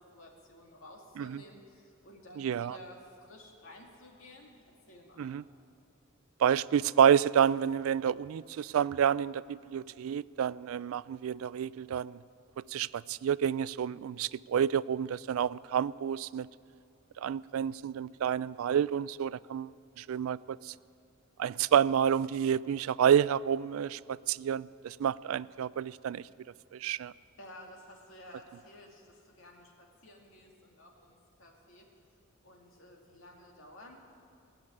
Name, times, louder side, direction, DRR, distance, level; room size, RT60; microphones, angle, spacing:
voice 1, 0.0-5.4 27.4-31.9 32.4-34.0, left 1 dB, 70° left, 0 dB, 2.4 m, -53 dB
voice 2, 2.4-2.8 5.2-5.4 6.4-12.2 12.7-16.5 17.2-20.7 21.4-26.2 26.7-27.1, right 8 dB, 80° right, 19 dB, 0.3 m, -29 dB
19.0 x 6.8 x 9.8 m, 2.4 s
head